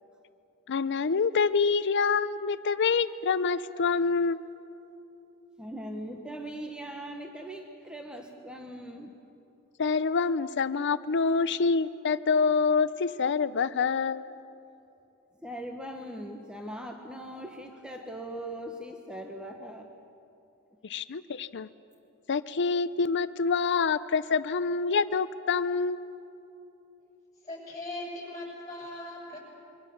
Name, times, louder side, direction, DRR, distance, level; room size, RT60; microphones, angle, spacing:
voice 1, 0.7-4.4 9.8-14.3 20.8-21.7 22.3-26.1, left 5 dB, 55° left, 14 dB, 0.6 m, -26 dB
voice 2, 5.6-9.1 15.4-19.9, right 1 dB, 5° right, 3 dB, 1.2 m, -40 dB
voice 3, 27.4-29.4, left 1 dB, 15° left, -3 dB, 7.6 m, -39 dB
26.5 x 24.0 x 7.1 m, 2.9 s
head